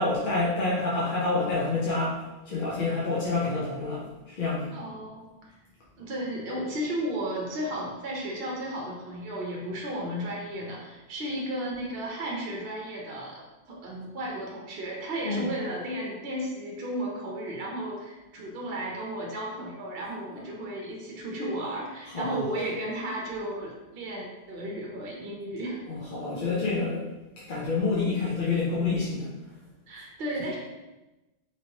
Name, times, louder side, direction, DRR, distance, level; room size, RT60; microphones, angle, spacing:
voice 1, 0.0-4.7 15.2-15.5 20.3-20.4 22.1-22.4 25.9-27.1 27.4-29.3, left 3 dB, 55° left, -6 dB, 0.7 m, -28 dB
voice 2, 4.7-5.5 6.0-13.4 13.7-25.8 29.9-30.6, right 1 dB, 60° right, -2 dB, 0.8 m, -34 dB
3.1 x 2.8 x 2.7 m, 1.1 s
omnidirectional pair, 1.2 m